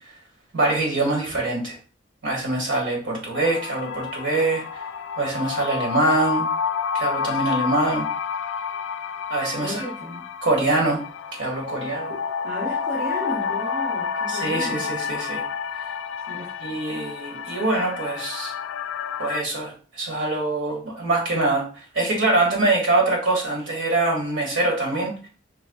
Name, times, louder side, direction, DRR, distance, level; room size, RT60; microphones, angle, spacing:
voice 1, 0.5-1.8 2.2-4.7 5.2-6.5 6.9-8.1 9.3-9.8 10.4-11.0 11.4-12.2 14.3-15.4 16.6-18.5 19.2-25.3, right 2 dB, 85° right, 1.8 m, -24 dB
sound 1, 3.3-19.4, left 6 dB, 85° left, 0.3 m, -29 dB
voice 2, 9.6-10.2 12.4-14.8 16.3-16.5, equal, 60° right, 1.1 m, -33 dB
4.6 x 3.9 x 2.3 m
head